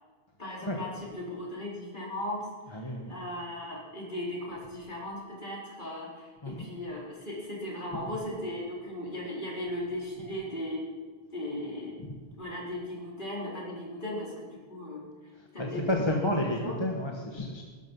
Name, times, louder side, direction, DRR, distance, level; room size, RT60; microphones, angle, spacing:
voice 1, 0.4-10.8 11.3-11.9 12.3-15.0 15.5-16.0 16.4-16.7, left 1 dB, 55° left, -4 dB, 4.4 m, -37 dB
voice 2, 2.7-3.1 6.4-6.7 12.0-12.1 15.3-17.6, left 1 dB, 25° left, 1 dB, 1.5 m, -31 dB
18.5 x 12.5 x 5.5 m, 1.5 s
omnidirectional pair, 1.0 m